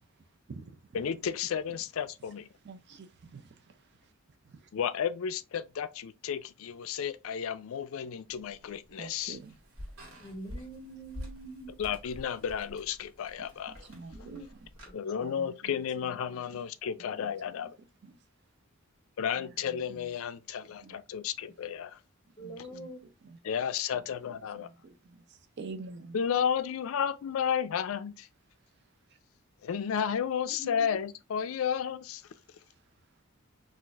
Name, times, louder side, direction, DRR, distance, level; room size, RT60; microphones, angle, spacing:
voice 1, 0.9-2.5 4.7-9.4 11.8-13.9 14.9-17.8 19.2-22.0 23.4-24.7 26.1-28.3 29.6-32.2, left 8 dB, 70° left, 0.4 m, -32 dB
voice 2, 2.6-3.8 4.5-4.7 9.0-9.6 13.4-14.4 15.2-16.6 17.2-17.7 18.0-18.2 19.3-20.1 20.8-21.0 22.4-22.9 23.2-23.4 23.9-26.2, right 3 dB, 50° right, 0.4 m, -48 dB
sound 1, 8.3-14.9, left 1 dB, 90° right, 1.4 m, -48 dB
voice 3, 10.2-11.7 14.1-14.5 14.8-14.9 22.4-23.0 30.5-31.0 31.4-31.5, right 1 dB, 20° left, 1.0 m, -45 dB
4.0 x 2.5 x 2.3 m
head